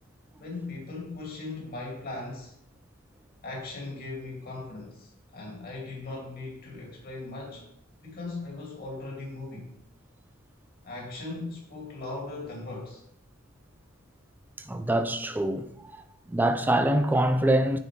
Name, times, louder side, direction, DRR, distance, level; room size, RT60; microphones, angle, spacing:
voice 1, 0.4-2.5 3.4-7.7 8.0-9.7 10.8-13.0, left 2 dB, 45° left, 2.3 m, -38 dB
voice 2, 14.7-15.7 15.9-16.0 16.3-17.8, right 1 dB, 10° right, 0.4 m, -24 dB
9.4 x 4.0 x 5.0 m
head